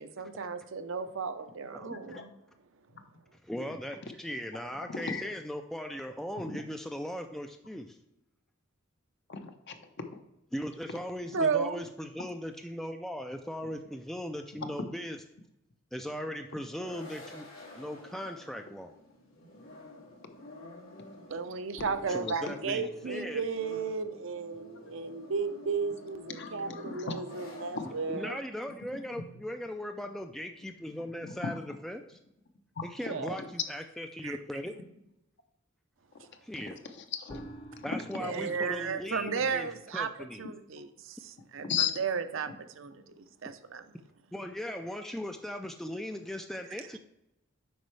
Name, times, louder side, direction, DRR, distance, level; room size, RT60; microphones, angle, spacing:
voice 1, 0.0-2.3 11.3-11.8 21.3-28.4 33.1-33.4 34.2-34.4 38.2-40.1 40.4-41.7 42.0-43.8, right 5 dB, 65° right, 9 dB, 0.6 m, -34 dB
voice 2, 1.9-2.3 4.9-5.3 6.5-6.6 9.3-10.2 24.8-24.9 26.3-27.2 27.5-27.9 31.2-31.5 32.8-32.9 33.4-33.5 37.1-37.4 37.9-38.0 41.7-41.9, left 6 dB, 55° left, 6 dB, 0.8 m, -35 dB
voice 3, 3.4-8.0 10.5-15.2 15.9-17.5 17.8-18.9 22.1-23.4 28.1-32.2 32.8-34.7 36.4-36.8 37.8-39.7 39.9-40.5 43.5-43.6 44.3-47.0, equal, ahead, 5 dB, 0.3 m, -38 dB
sound 1, 16.4-28.3, left 2 dB, 90° left, 2.6 m, -50 dB
sound 2, 21.8-28.4 28.7-28.8 29.2-29.3 37.3-39.8, right 1 dB, 20° left, 0.8 m, -52 dB
8.0 x 5.4 x 3.2 m, 0.86 s
head